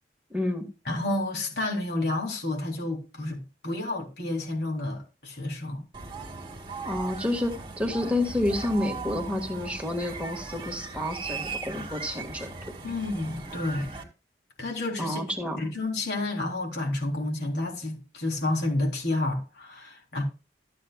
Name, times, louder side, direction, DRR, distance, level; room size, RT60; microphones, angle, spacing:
voice 1, 0.3-0.7 6.8-12.5 15.0-15.7, left 1 dB, 5° right, 1.8 m, -29 dB
voice 2, 0.9-5.9 12.8-13.9 14.6-15.2 15.6-20.2, left 2 dB, 70° left, 3.6 m, -30 dB
sound 1, 5.9-14.0, right 4 dB, 25° right, 2.1 m, -38 dB
14.0 x 8.4 x 2.4 m
head